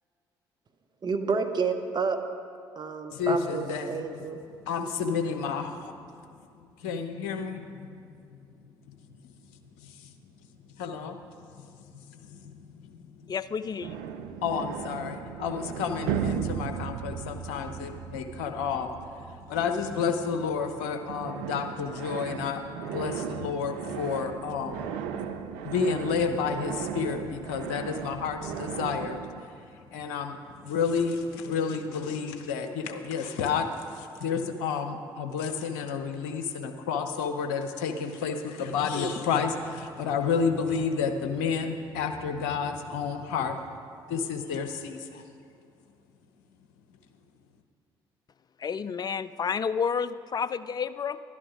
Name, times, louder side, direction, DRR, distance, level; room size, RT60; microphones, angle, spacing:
voice 1, 1.0-2.2 2.8-4.4, right 4 dB, 35° right, 6 dB, 1.1 m, -29 dB
voice 2, 3.1-4.1 4.6-6.1 6.8-7.7 9.8-10.1 10.8-13.3 14.4-43.6 44.1-45.2, left 5 dB, 75° left, 7 dB, 0.9 m, -31 dB
voice 3, 13.3-14.0 48.6-51.2, left 6 dB, 35° left, 15 dB, 0.4 m, -30 dB
sound 1, 13.8-20.8 21.1-29.4, right 8 dB, 70° right, 0.5 m, -36 dB
11.5 x 11.0 x 5.1 m, 2.5 s
figure-of-eight pair, 50°, 12 cm